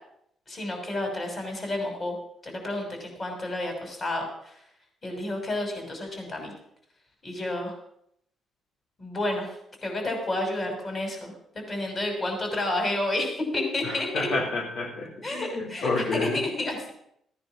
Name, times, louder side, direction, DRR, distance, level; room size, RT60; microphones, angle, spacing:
voice 1, 0.5-2.1 2.4-4.6 5.0-6.5 7.2-7.8 9.0-9.5 9.8-11.3 11.7-14.3 15.2-16.9, left 1 dB, 35° left, 3 dB, 6.1 m, -30 dB
voice 2, 13.8-16.4, left 3 dB, 80° left, -2 dB, 4.0 m, -29 dB
16.0 x 9.7 x 6.1 m, 0.72 s
cardioid pair, 90°, 0 cm